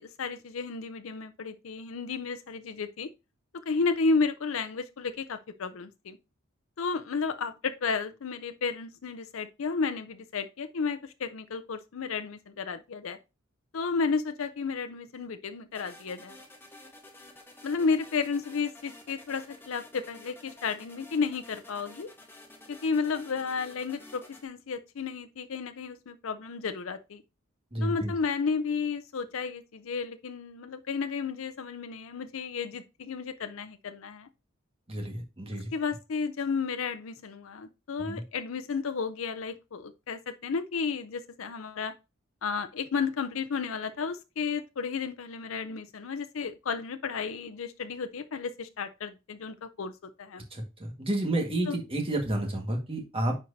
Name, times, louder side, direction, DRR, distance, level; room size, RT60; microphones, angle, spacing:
voice 1, 0.0-3.1 3.7-6.2 6.8-13.2 13.7-16.4 17.6-22.1 22.7-27.2 27.8-34.3 35.7-41.9 42.4-49.9 50.2-50.4 51.7-51.8, left 5 dB, 75° left, 0.5 m, -32 dB
sound 1, 15.7-24.4, left 2 dB, 10° left, 1.1 m, -51 dB
voice 2, 27.7-28.1 34.9-35.7 38.0-38.2 50.5-53.4, right 1 dB, 25° right, 1.6 m, -30 dB
9.6 x 4.5 x 2.7 m
head